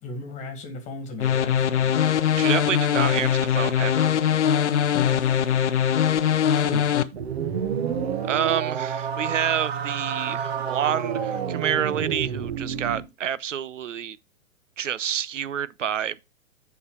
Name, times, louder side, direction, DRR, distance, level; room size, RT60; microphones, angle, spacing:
voice 1, 0.0-1.9 4.9-5.2 6.5-6.9, left 2 dB, 15° left, 1.8 m, -35 dB
sound 1, 1.2-7.0, left 9 dB, 55° left, 0.8 m, -21 dB
voice 2, 2.3-4.1 8.3-14.2 14.8-16.2, right 9 dB, 65° right, 0.6 m, -28 dB
sound 2, 7.1-13.1, right 7 dB, 50° right, 1.5 m, -29 dB
7.9 x 5.2 x 4.7 m
figure-of-eight pair, 120°, 41 cm